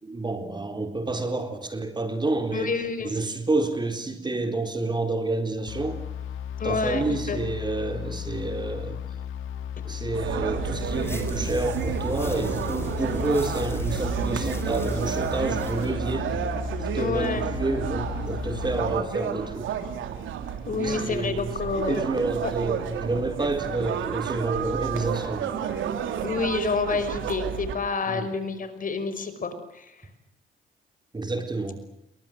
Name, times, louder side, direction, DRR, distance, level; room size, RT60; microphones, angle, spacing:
voice 1, 0.0-2.7 3.0-6.0 6.6-9.0 9.9-16.5 16.8-19.7 20.8-21.5 21.9-25.5 28.1-28.3 31.1-31.8, right 2 dB, 20° right, 7 dB, 4.0 m, -29 dB
voice 2, 2.5-3.1 6.6-7.4 17.0-17.5 20.7-22.1 22.4-22.5 26.2-30.0, left 4 dB, 45° left, 10 dB, 5.5 m, -28 dB
sound 1, 5.7-19.0, left 9 dB, 85° left, 2.1 m, -35 dB
sound 2, 10.1-27.8, right 8 dB, 80° right, 3.1 m, -31 dB
sound 3, 10.7-16.0, left 2 dB, 10° left, 5.0 m, -38 dB
28.5 x 23.0 x 8.0 m, 0.80 s
cardioid pair, 90°, 20 cm